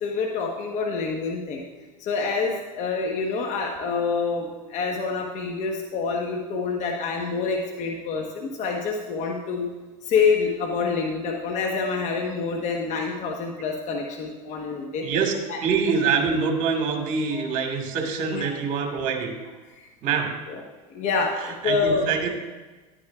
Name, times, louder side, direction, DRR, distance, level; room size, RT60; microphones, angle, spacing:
voice 1, 0.0-1.6 2.0-9.7 10.1-15.1 15.5-15.6 17.3-17.4 18.3-18.4 20.5-20.6 20.9-22.1, left 5 dB, 45° left, 1 dB, 1.2 m, -27 dB
voice 2, 15.0-15.3 15.6-19.3 20.0-20.3 21.4-22.3, right 5 dB, 50° right, 3 dB, 1.9 m, -25 dB
11.5 x 9.8 x 2.4 m, 1.2 s
hypercardioid pair, 100°, 17 cm